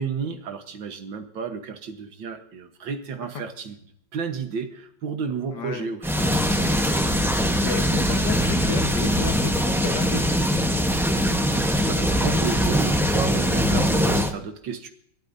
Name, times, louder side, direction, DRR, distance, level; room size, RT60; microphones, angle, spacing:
voice 1, 0.0-3.8 4.1-6.4 11.3-14.9, right 6 dB, 90° right, 5 dB, 1.9 m, -32 dB
voice 2, 5.5-5.9 7.6-10.2, left 6 dB, 65° left, 7 dB, 1.8 m, -32 dB
sound 1, 6.0-14.3, equal, ahead, 0.6 m, -22 dB
27.5 x 11.5 x 2.7 m, 0.67 s
omnidirectional pair, 2.0 m